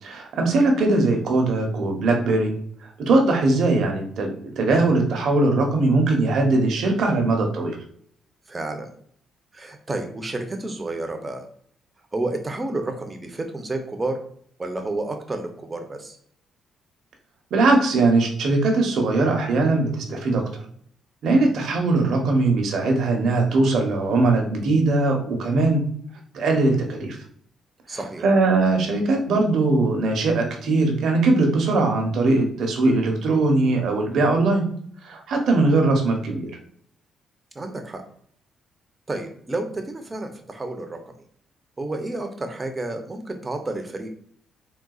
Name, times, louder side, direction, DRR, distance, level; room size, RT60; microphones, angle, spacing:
voice 1, 0.0-2.5 2.8-7.8 17.5-20.4 21.2-25.8 26.3-27.2 27.9-34.7 35.0-36.5, right 2 dB, 70° right, 2 dB, 0.8 m, -20 dB
voice 2, 8.5-8.9 9.5-11.5 12.1-14.2 14.6-16.2 27.9-28.2 37.5-38.0 39.1-41.1 41.8-44.1, right 2 dB, 25° right, 4 dB, 0.6 m, -30 dB
3.8 x 2.3 x 2.3 m, 0.63 s
cardioid pair, 90°, 0 cm